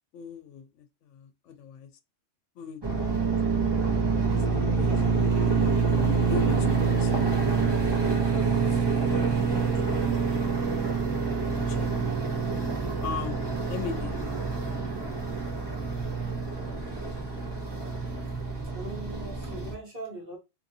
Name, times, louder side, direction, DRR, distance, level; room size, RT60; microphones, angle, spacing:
voice 1, 0.1-1.9 2.6-2.8 3.2-3.8 4.5-5.3 5.9-7.1 7.5-8.1 8.5-8.9 9.5-10.5 11.7-11.9 12.2-12.3 13.0-14.4 15.1-15.6, left 7 dB, 75° left, 0.9 m, -41 dB
sound 1, 2.8-19.7, right 5 dB, 20° right, 0.8 m, -26 dB
voice 2, 18.6-20.4, right 2 dB, 45° right, 1.6 m, -40 dB
2.9 x 2.6 x 2.6 m
omnidirectional pair, 1.3 m